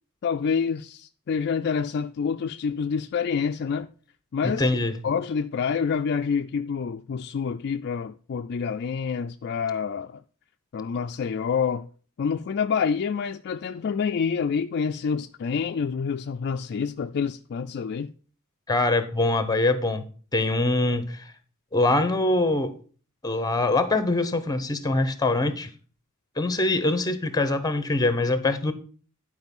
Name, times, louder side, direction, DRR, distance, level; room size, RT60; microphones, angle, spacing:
voice 1, 0.2-3.9 4.3-4.6 5.0-10.2 10.7-11.9 12.2-18.1, left 6 dB, 50° left, 0.3 m, -27 dB
voice 2, 4.4-5.0 18.7-20.1 20.3-21.2 21.7-22.7 23.2-25.7 26.4-28.7, left 2 dB, 15° left, 0.8 m, -23 dB
10.5 x 4.9 x 5.4 m
head